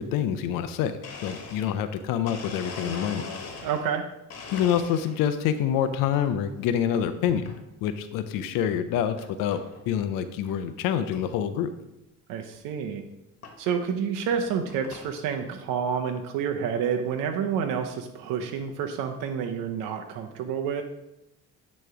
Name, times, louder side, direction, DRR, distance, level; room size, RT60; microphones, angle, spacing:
voice 1, 0.0-3.3 4.5-7.5 7.8-9.6 9.9-11.7, left 9 dB, 80° left, 10 dB, 0.6 m, -26 dB
Domestic sounds home sounds, 1.0-4.0 4.3-5.3 5.8-6.3 7.3-7.6 8.2-8.3 9.2-9.3 9.5-9.8 10.3-10.4 10.6-10.7 11.1-11.2 12.5-12.6 13.4-13.6 14.2-15.1, left 4 dB, 50° left, 1.3 m, -41 dB
voice 2, 3.6-4.0 12.3-13.0 13.6-20.8, right 7 dB, 80° right, 4 dB, 0.7 m, -29 dB
9.2 x 3.2 x 4.8 m, 0.90 s
cardioid pair, 95°, 33 cm